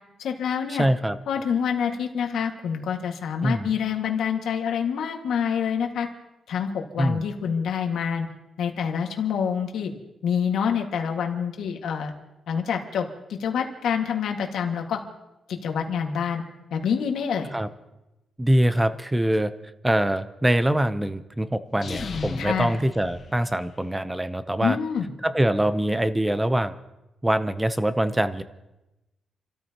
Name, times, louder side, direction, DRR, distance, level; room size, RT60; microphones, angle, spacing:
voice 1, 0.2-0.9 1.3-6.1 6.5-8.3 8.6-9.9 10.2-12.1 12.5-15.0 15.5-16.4 16.7-17.5 22.4-22.7 24.6-25.1, left 7 dB, 80° left, 3 dB, 1.8 m, -27 dB
voice 2, 0.7-1.2 3.4-3.7 7.0-7.2 17.5-17.7 18.4-19.5 19.8-24.8 25.2-26.7 27.2-28.4, right 1 dB, 10° right, 12 dB, 0.7 m, -23 dB
sound 1, 21.7-23.9, left 4 dB, 45° left, 1.3 m, -35 dB
30.0 x 13.5 x 2.9 m, 0.97 s
cardioid pair, 135°, 0 cm